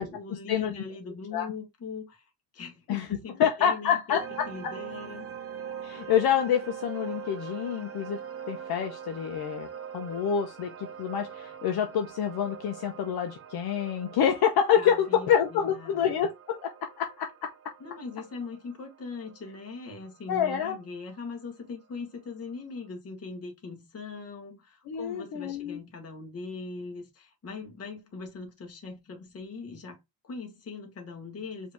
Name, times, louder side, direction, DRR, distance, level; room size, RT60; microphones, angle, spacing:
voice 1, 0.0-4.2 4.5-5.3 14.8-16.1 17.8-30.0 30.2-31.7, left 4 dB, 35° left, 1.5 m, -41 dB
voice 2, 3.4-4.5 5.8-8.2 8.5-9.7 9.9-17.5 20.3-20.8 24.9-25.8, left 8 dB, 60° left, 0.9 m, -27 dB
sound 1, 4.2-21.2, right 8 dB, 35° right, 0.7 m, -43 dB
4.9 x 2.8 x 3.4 m
cardioid pair, 150°, 42 cm